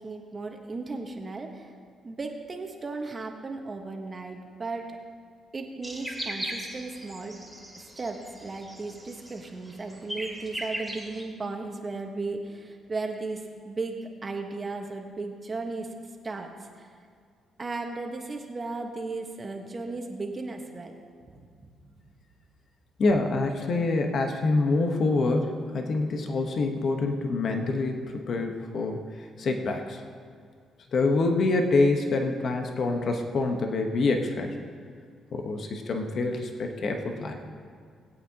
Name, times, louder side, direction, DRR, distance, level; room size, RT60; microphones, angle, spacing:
voice 1, 0.0-1.7 2.0-4.9 5.5-7.3 7.8-15.9 16.2-16.9 17.6-21.0 21.3-21.5, right 3 dB, 30° right, 3 dB, 1.3 m, -36 dB
sound 1, 5.8-11.2, right 1 dB, ahead, 2.6 m, -38 dB
voice 2, 23.0-29.0 29.4-30.0 30.9-34.5 35.3-37.4, left 3 dB, 55° left, 4 dB, 1.1 m, -26 dB
20.0 x 8.6 x 2.9 m, 2.1 s
cardioid pair, 90°, 0 cm